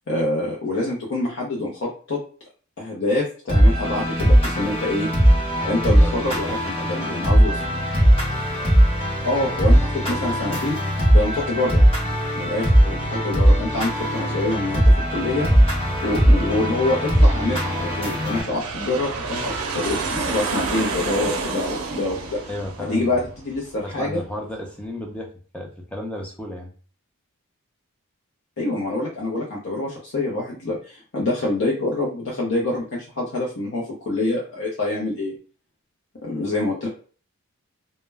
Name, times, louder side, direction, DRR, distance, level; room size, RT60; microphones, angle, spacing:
voice 1, 0.1-2.2 2.8-5.1 5.6-7.6 9.2-10.8 11.1-11.8 12.3-14.8 15.1-15.5 16.0-22.4 22.8-24.2 28.6-35.3 36.2-36.9, left 2 dB, 55° left, -3 dB, 0.6 m, -26 dB
sound 1, 3.5-18.4, equal, 25° left, 0.9 m, -19 dB
voice 2, 6.0-6.5 6.8-7.2 22.5-23.3 23.8-26.7, left 1 dB, 5° left, 0 dB, 0.4 m, -34 dB
Aircraft, 13.2-24.2, right 4 dB, 75° right, 0.5 m, -32 dB
2.1 x 2.1 x 3.3 m, 0.41 s
head